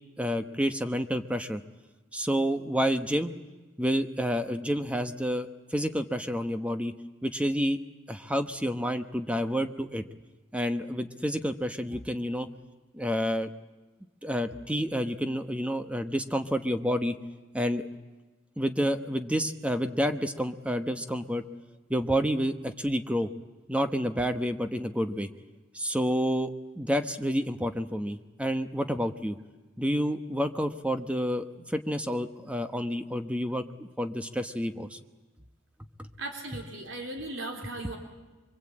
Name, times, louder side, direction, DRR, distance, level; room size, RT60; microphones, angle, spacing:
voice 1, 0.2-1.6 2.1-3.3 3.8-6.9 7.2-7.8 8.1-10.0 10.5-12.5 12.9-13.5 14.2-17.2 17.5-17.9 18.6-21.4 21.9-23.3 23.7-25.3 25.7-26.5 26.8-29.4 29.8-35.0 36.0-36.1, equal, 5° right, 8 dB, 1.0 m, -29 dB
voice 2, 36.2-38.0, right 2 dB, 60° right, 2 dB, 3.6 m, -37 dB
25.0 x 24.0 x 8.7 m, 1.2 s
head